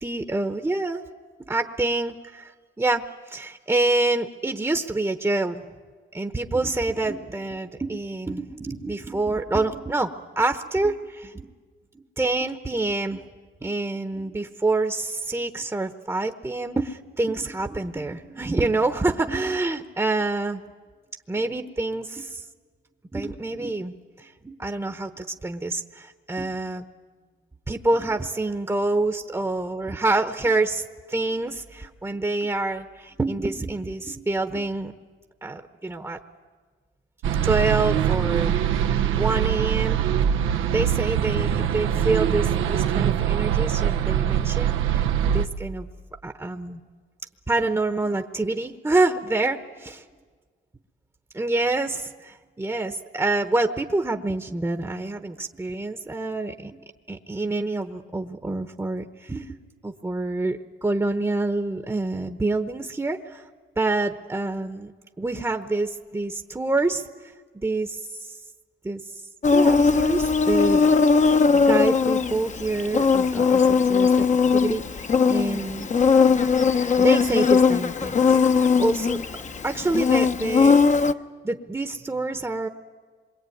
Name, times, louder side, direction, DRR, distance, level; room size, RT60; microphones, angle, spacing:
voice 1, 0.0-1.0 1.5-5.6 6.1-11.5 12.2-13.2 13.6-20.6 21.3-22.4 23.1-26.9 27.7-34.9 35.4-36.2 37.4-38.6 39.2-40.0 40.7-45.1 45.3-45.9 46.2-46.8 47.5-50.0 51.3-56.8 57.1-59.6 59.8-63.4 63.8-64.9 65.2-68.3 68.8-69.0 69.5-70.8 71.5-74.2 74.5-75.9 77.0-79.2 79.6-80.8 81.4-82.7, right 2 dB, 15° right, 6 dB, 1.1 m, -27 dB
sound 1, 37.2-45.5, right 10 dB, 90° right, 0.9 m, -23 dB
Insect, 69.4-81.1, left 5 dB, 35° left, 1.0 m, -19 dB
26.5 x 22.0 x 9.3 m, 1.5 s
cardioid pair, 90°, 20 cm